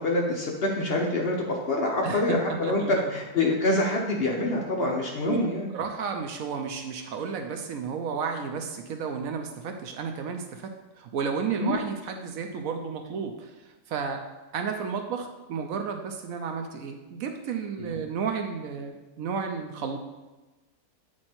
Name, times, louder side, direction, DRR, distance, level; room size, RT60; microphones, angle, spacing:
voice 1, 0.0-5.7 11.6-11.8 17.8-18.0, left 2 dB, 50° left, -1 dB, 0.8 m, -26 dB
voice 2, 2.0-3.0 5.3-5.4 5.7-13.5 13.9-14.2 14.5-20.0, right 6 dB, 70° right, 5 dB, 1.0 m, -32 dB
8.3 x 3.2 x 4.3 m, 1.1 s
omnidirectional pair, 1.6 m